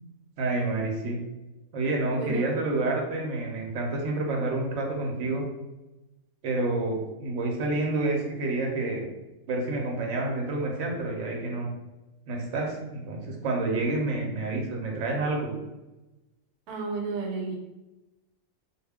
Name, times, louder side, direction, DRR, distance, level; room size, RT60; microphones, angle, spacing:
voice 1, 0.4-1.2 1.7-5.4 6.4-9.1 9.5-11.7 12.3-15.5, right 2 dB, 60° right, 0 dB, 0.8 m, -28 dB
voice 2, 2.2-2.6 16.7-17.6, right 4 dB, 85° right, 0 dB, 1.1 m, -32 dB
2.3 x 2.2 x 3.4 m, 1.0 s
omnidirectional pair, 1.6 m